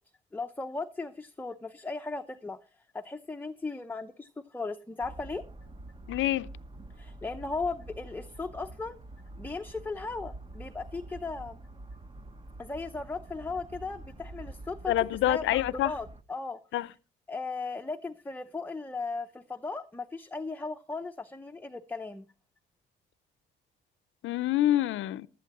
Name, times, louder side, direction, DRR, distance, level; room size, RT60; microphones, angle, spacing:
voice 1, 0.3-2.6 2.9-5.4 7.0-9.0 9.4-11.6 12.6-14.9 15.3-16.6 17.3-22.2, left 3 dB, 10° left, 0.7 m, -37 dB
sound 1, 5.0-16.2, right 2 dB, 25° right, 1.0 m, -46 dB
voice 2, 6.1-6.5 14.9-15.9 16.7-16.9 24.2-25.3, left 14 dB, 80° left, 0.6 m, -26 dB
16.5 x 11.5 x 3.0 m
cardioid pair, 90°, 20 cm